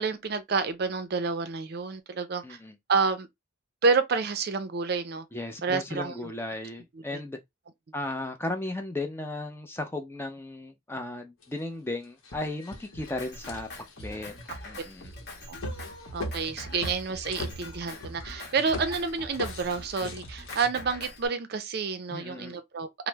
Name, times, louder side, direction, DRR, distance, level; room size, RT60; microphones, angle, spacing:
voice 1, 0.0-2.6 2.9-3.3 3.8-5.3 5.6-6.3 7.1-7.2 15.5-15.6 16.1-23.1, right 4 dB, 50° right, 0.4 m, -29 dB
voice 2, 2.4-2.8 5.3-7.4 7.9-13.7 14.0-14.3 14.6-15.1 22.1-22.5, left 2 dB, 10° left, 0.4 m, -35 dB
sound 1, 11.4-11.5 12.0-20.7, left 1 dB, 80° left, 0.8 m, -40 dB
Drum kit, 12.9-21.3, left 1 dB, 50° left, 0.9 m, -44 dB
2.9 x 2.0 x 3.2 m
head